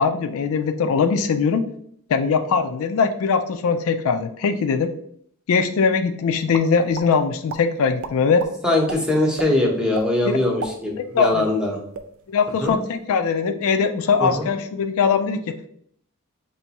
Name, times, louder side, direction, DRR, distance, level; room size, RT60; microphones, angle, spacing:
voice 1, 0.0-1.7 2.1-4.9 5.5-8.4 10.2-10.4 11.0-11.5 12.3-15.6, left 5 dB, 65° left, 7 dB, 0.4 m, -21 dB
sound 1, 6.5-7.1 7.5-7.6 8.0-8.5 8.9-9.0 9.4-9.5 9.9-10.1 10.4-11.7 11.9-12.1 12.5-12.8, right 5 dB, 65° right, 0.4 m, -32 dB
voice 2, 8.6-11.8 12.6-12.7 14.2-14.4, left 1 dB, 5° right, -1 dB, 0.8 m, -21 dB
4.5 x 3.0 x 2.9 m, 0.66 s
head